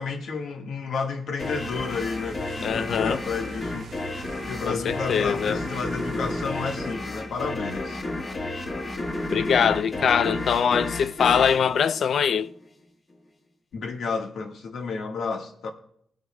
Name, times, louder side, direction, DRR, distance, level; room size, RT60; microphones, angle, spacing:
voice 1, 0.0-3.9 4.5-8.0 13.7-15.7, left 4 dB, 90° left, 1.4 m, -31 dB
sound 1, 1.4-12.7, left 2 dB, 35° left, 1.3 m, -32 dB
sound 2, 1.4-6.9, right 8 dB, 65° right, 0.5 m, -44 dB
voice 2, 2.6-3.2 4.7-5.6 9.3-12.5, left 7 dB, 60° left, 0.3 m, -22 dB
22.5 x 9.3 x 2.2 m
wide cardioid pair, 165°, 0 cm